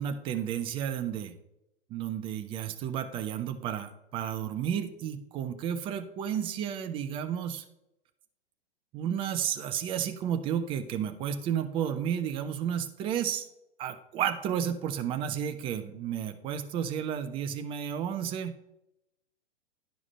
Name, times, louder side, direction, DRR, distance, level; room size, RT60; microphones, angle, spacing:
voice 1, 0.0-1.3 1.9-7.6 8.9-13.4 13.8-18.5, right 9 dB, 15° right, 9 dB, 0.6 m, -32 dB
11.5 x 4.9 x 5.4 m, 0.85 s
figure-of-eight pair, 110°, 32 cm